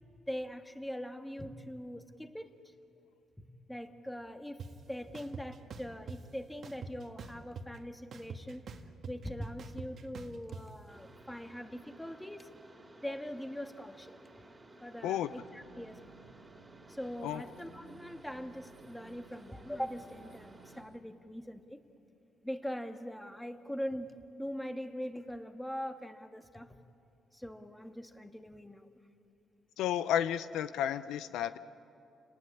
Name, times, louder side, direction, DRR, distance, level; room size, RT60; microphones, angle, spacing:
voice 1, 0.3-2.7 3.4-4.6 4.9-8.7 9.1-12.5 13.0-14.5 14.8-16.1 16.9-21.8 22.4-26.8 27.3-28.9, equal, 5° left, 7 dB, 1.6 m, -42 dB
sound 1, 4.6-4.7 5.1-6.2 6.6-7.8 8.1-10.6, right 4 dB, 60° right, 1.8 m, -44 dB
Mechanisms, 10.9-20.8, right 1 dB, 20° right, 3.0 m, -56 dB
sound 2, 15.3-21.0, right 5 dB, 85° right, 2.5 m, -58 dB
voice 2, 29.8-31.6, left 10 dB, 90° left, 13 dB, 0.6 m, -32 dB
29.5 x 19.0 x 9.9 m, 2.6 s
cardioid pair, 90°, 0 cm